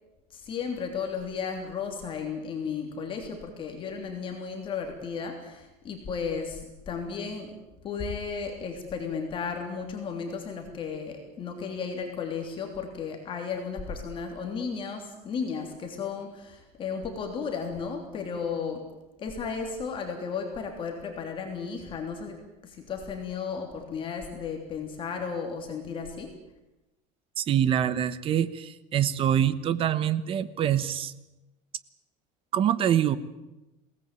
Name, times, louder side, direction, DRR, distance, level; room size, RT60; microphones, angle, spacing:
voice 1, 0.3-7.5 7.8-18.8 19.2-26.3, left 5 dB, 30° left, 3 dB, 3.3 m, -34 dB
voice 2, 27.4-31.1 32.5-33.2, right 10 dB, 35° right, 15 dB, 1.2 m, -25 dB
22.0 x 18.5 x 9.1 m, 1.0 s
cardioid pair, 150°, 16 cm